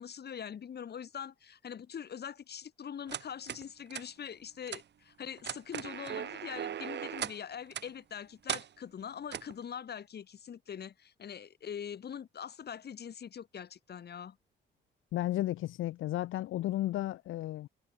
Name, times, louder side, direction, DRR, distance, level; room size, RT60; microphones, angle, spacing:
voice 1, 0.0-14.4, left 8 dB, 55° left, 7.9 m, -43 dB
sound 1, 3.1-3.6 3.9-4.0 4.7-4.8 5.4-7.4 7.7-7.9 8.5-8.7 9.3-9.5, right 9 dB, 60° right, 2.8 m, -38 dB
voice 2, 15.1-17.7, left 14 dB, 85° left, 2.1 m, -33 dB
cardioid pair, 90°, 20 cm